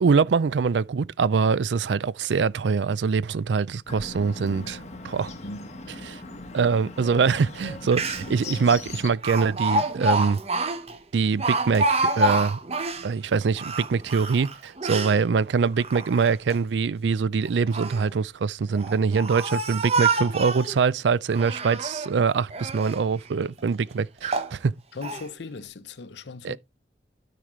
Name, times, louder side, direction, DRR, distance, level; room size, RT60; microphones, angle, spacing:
voice 1, 0.0-5.3 6.0-6.2 6.5-10.4 11.1-12.6 13.0-24.7 26.4-26.6, right 5 dB, 85° right, 0.4 m, -24 dB
Bird, 3.9-9.1, left 2 dB, 40° left, 1.3 m, -39 dB
voice 2, 5.4-5.8 12.9-13.1 24.9-26.6, left 3 dB, 80° left, 0.7 m, -38 dB
Speech, 7.6-7.7 7.9-8.5 9.2-13.1 13.5-15.2 15.7-16.6 17.5-18.0 18.7-20.8 21.3-22.1 22.5-23.0 23.6-23.7 24.2-24.5 25.0-25.3, right 2 dB, 35° right, 1.0 m, -27 dB
12.5 x 5.0 x 3.1 m
head